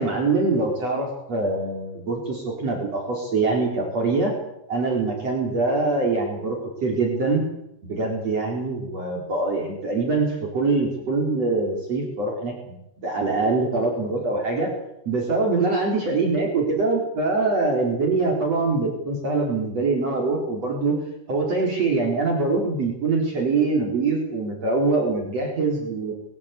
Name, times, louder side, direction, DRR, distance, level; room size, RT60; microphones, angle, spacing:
voice 1, 0.0-4.3 4.7-7.4 7.8-12.8 13.0-14.7 15.1-21.0 21.3-26.1, right 3 dB, 40° right, -1 dB, 4.9 m, -24 dB
23.0 x 16.0 x 8.4 m, 0.84 s
omnidirectional pair, 4.8 m